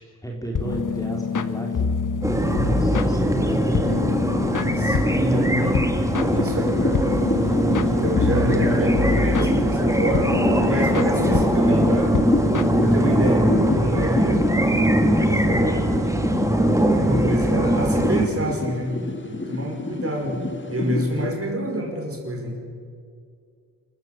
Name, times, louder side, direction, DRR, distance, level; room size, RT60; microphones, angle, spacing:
voice 1, 0.2-1.9 2.3-5.5 15.5-15.9 20.2-20.4, right 1 dB, 10° left, 0 dB, 3.5 m, -33 dB
sound 1, 0.6-13.4, left 6 dB, 55° left, 1.2 m, -27 dB
sound 2, 2.2-18.3, right 1 dB, 10° right, 2.2 m, -21 dB
voice 2, 4.8-5.9 6.2-7.0 7.8-10.3 10.6-12.2 12.8-14.5 15.0-15.8 17.0-19.0 19.3-20.4 20.7-22.6, right 1 dB, 35° right, 1 dB, 5.5 m, -27 dB
sound 3, 6.2-21.3, left 3 dB, 30° left, 2.0 m, -28 dB
27.5 x 14.5 x 7.4 m, 2.2 s
wide cardioid pair, 90°, 37 cm